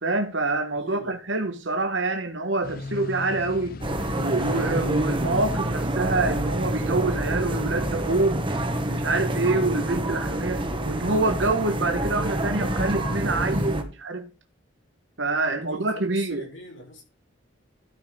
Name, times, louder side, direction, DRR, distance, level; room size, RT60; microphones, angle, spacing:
voice 1, 0.0-3.8 4.2-8.4 8.8-14.3 15.2-16.5, right 2 dB, 70° right, 1.4 m, -26 dB
voice 2, 0.7-1.2 15.7-17.0, left 1 dB, 90° left, 6.6 m, -43 dB
sound 1, 2.6-10.0, left 3 dB, 50° left, 0.6 m, -39 dB
sound 2, 3.8-13.8, right 1 dB, 25° right, 1.5 m, -27 dB
12.5 x 6.0 x 5.2 m
head